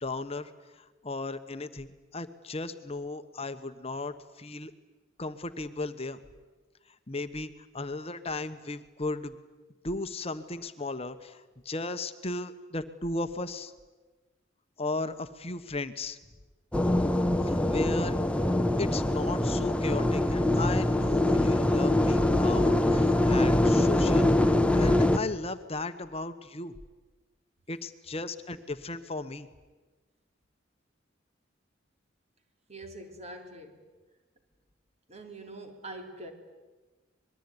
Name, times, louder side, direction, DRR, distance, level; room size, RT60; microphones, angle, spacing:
voice 1, 0.0-0.5 1.0-4.7 5.2-6.2 7.1-9.3 9.8-13.7 14.8-16.2 17.4-18.1 18.8-26.7 27.7-29.5, left 2 dB, 30° left, 10 dB, 1.2 m, -36 dB
sound 1, 16.7-25.2, left 1 dB, 5° left, 1.0 m, -24 dB
voice 2, 32.7-33.8 35.1-36.3, right 1 dB, 35° right, 5 dB, 3.6 m, -44 dB
25.5 x 22.0 x 9.8 m, 1.2 s
head